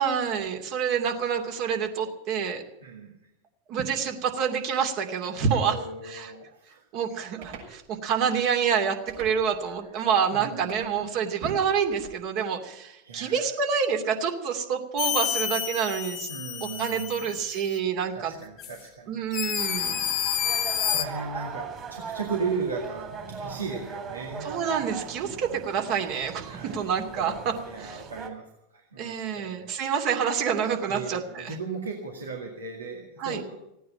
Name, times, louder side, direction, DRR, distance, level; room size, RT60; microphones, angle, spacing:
voice 1, 0.0-2.6 3.7-5.7 6.1-6.3 6.9-16.3 16.6-18.3 19.1-20.0 24.4-28.0 29.0-31.5 33.2-33.4, right 7 dB, 50° right, 4 dB, 2.7 m, -27 dB
voice 2, 2.8-3.2 5.7-6.9 10.3-11.2 13.0-13.6 16.3-17.7 18.1-19.2 20.4-24.5 26.4-29.8 30.9-33.6, right 4 dB, 90° right, 0 dB, 2.1 m, -37 dB
sound 1, 7.4-7.7 9.1-9.6 10.7-10.9 11.5-12.2, right 5 dB, 65° right, 6.7 m, -44 dB
sound 2, 15.0-17.8 18.6-18.7 19.3-21.0, left 10 dB, 45° left, 1.4 m, -29 dB
sound 3, 19.6-28.3, right 5 dB, 30° right, 3.2 m, -39 dB
16.0 x 9.3 x 8.9 m, 0.85 s
hypercardioid pair, 90°, 0 cm